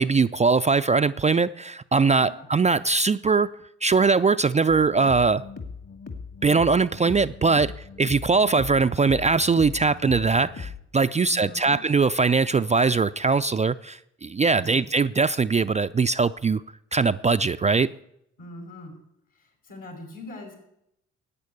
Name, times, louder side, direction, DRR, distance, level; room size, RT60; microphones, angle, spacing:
voice 1, 0.0-3.5 3.8-5.4 6.4-7.7 8.0-16.6 16.9-17.9, right 4 dB, 20° right, 11 dB, 0.4 m, -21 dB
voice 2, 2.1-2.5 11.1-11.7 14.5-14.8 18.4-19.0 19.3-20.6, left 1 dB, 70° left, 2 dB, 5.5 m, -42 dB
sound 1, 4.7-10.8, left 5 dB, 45° left, 2.5 m, -39 dB
12.0 x 8.8 x 8.5 m, 0.79 s
hypercardioid pair, 55°, 34 cm